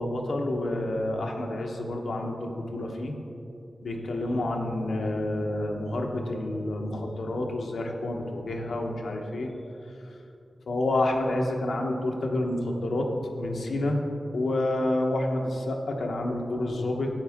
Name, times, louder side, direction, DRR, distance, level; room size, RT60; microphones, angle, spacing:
voice 1, 0.0-3.1 3.8-9.5 10.7-13.1 13.4-14.0 14.3-17.1, left 1 dB, 85° left, 1 dB, 1.0 m, -29 dB
10.5 x 8.6 x 3.6 m, 2.8 s
wide cardioid pair, 80°, 0 cm